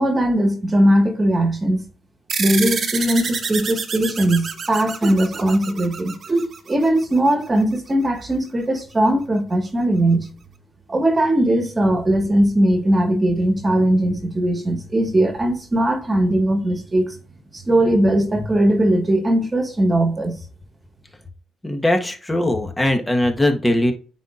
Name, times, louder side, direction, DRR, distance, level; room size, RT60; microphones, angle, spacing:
voice 1, 0.0-1.8 2.4-10.3 10.9-17.1 17.5-20.4, right 1 dB, 25° right, 1.7 m, -19 dB
sound 1, 2.3-7.2, right 5 dB, 50° right, 1.1 m, -28 dB
voice 2, 21.6-23.9, left 1 dB, 15° left, 1.4 m, -20 dB
9.0 x 4.2 x 2.6 m
cardioid pair, 90°, 0 cm